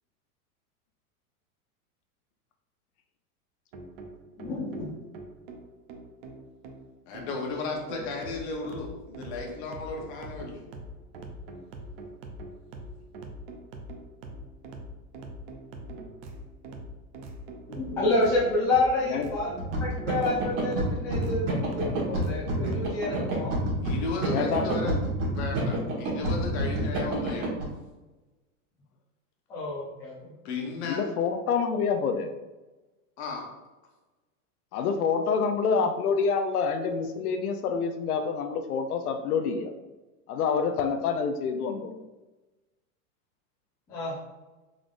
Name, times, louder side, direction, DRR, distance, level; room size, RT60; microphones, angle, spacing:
sound 1, 3.7-22.9, right 1 dB, 40° right, 0.5 m, -43 dB
voice 1, 4.4-4.9 17.7-19.5 19.8-23.6 29.5-30.3 43.9-44.2, left 2 dB, 5° left, -8 dB, 0.4 m, -28 dB
voice 2, 7.1-10.6 23.8-24.9 25.3-27.5 30.4-31.1 33.2-33.5, left 3 dB, 50° left, 1 dB, 0.9 m, -34 dB
sound 2, 19.6-27.6, right 1 dB, 70° right, 1.4 m, -28 dB
voice 3, 24.3-24.7 30.8-32.3 34.7-39.7 40.3-42.0, left 5 dB, 80° left, 6 dB, 0.6 m, -27 dB
3.7 x 3.5 x 2.5 m, 1.1 s
supercardioid pair, 155°, 44 cm